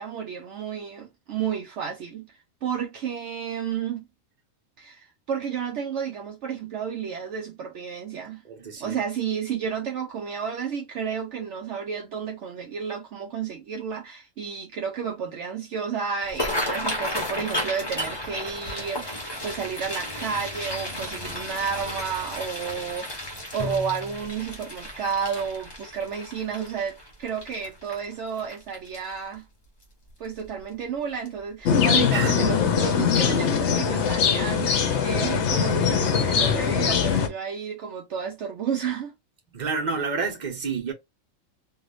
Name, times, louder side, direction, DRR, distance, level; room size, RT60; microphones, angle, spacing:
voice 1, 0.0-4.1 4.8-8.4 8.8-29.5 30.2-39.1, right 7 dB, 70° right, 0.9 m, -31 dB
voice 2, 8.5-9.0 32.1-32.6 39.5-40.9, right 4 dB, 35° right, 1.1 m, -29 dB
sound 1, 16.2-29.3 29.8-30.1 30.4-30.8 31.3-31.4 32.6-32.8 33.2-33.3 33.8-33.9, left 1 dB, 20° left, 1.1 m, -33 dB
Bowed string instrument, 23.6-24.5, left 5 dB, 45° left, 0.6 m, -36 dB
sound 2, 31.7-37.3, left 7 dB, 60° left, 0.9 m, -22 dB
3.2 x 2.7 x 2.5 m
omnidirectional pair, 1.4 m